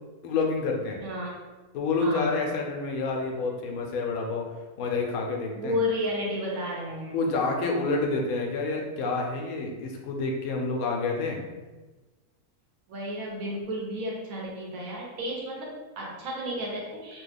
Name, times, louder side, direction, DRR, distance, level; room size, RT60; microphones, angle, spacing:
voice 1, 0.2-1.0 1.7-4.5 4.8-5.8 7.1-11.4, left 3 dB, 75° left, 1 dB, 1.0 m, -28 dB
voice 2, 1.0-1.3 2.0-2.4 5.5-7.2 12.9-17.2, left 1 dB, 70° right, -3 dB, 1.2 m, -32 dB
3.1 x 2.2 x 3.3 m, 1.2 s
omnidirectional pair, 1.5 m